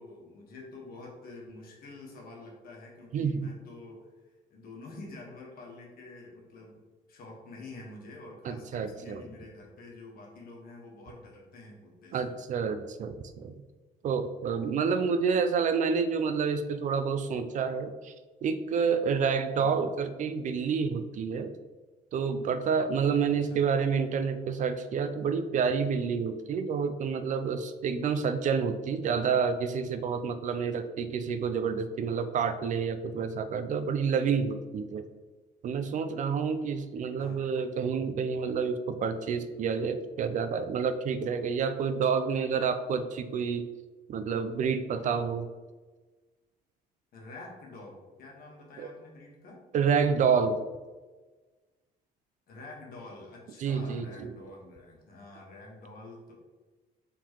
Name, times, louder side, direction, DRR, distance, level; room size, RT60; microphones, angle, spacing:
voice 1, 0.0-4.1 4.5-12.3 19.5-19.8 23.3-23.6 37.2-37.5 47.1-49.6 52.5-56.3, left 2 dB, 60° left, -1 dB, 1.4 m, -47 dB
voice 2, 3.1-3.5 8.4-9.2 12.1-13.6 14.0-18.1 18.4-21.5 22.1-35.0 35.6-43.7 44.1-45.5 48.8-48.9 49.7-50.6 53.6-54.3, right 6 dB, 50° right, 10 dB, 0.4 m, -29 dB
4.5 x 3.8 x 3.0 m, 1.3 s
cardioid pair, 110°, 17 cm